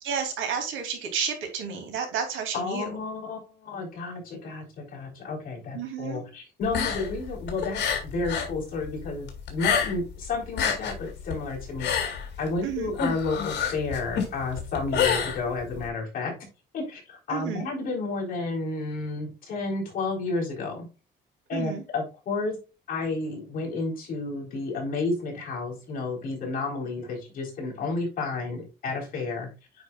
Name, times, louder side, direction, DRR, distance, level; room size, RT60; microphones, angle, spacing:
voice 1, 0.0-2.9 5.7-6.2 12.6-12.9 17.3-17.7 21.5-21.8, right 7 dB, 80° right, 4 dB, 2.7 m, -31 dB
voice 2, 2.5-16.3 16.7-20.9 21.5-22.6 22.9-29.5, left 3 dB, 45° left, -2 dB, 3.8 m, -31 dB
sound 1, 6.6-8.6 8.8-10.2 10.4-15.9, left 7 dB, 60° left, 2.4 m, -28 dB
9.4 x 5.3 x 2.3 m, 0.31 s
cardioid pair, 165°, 20 cm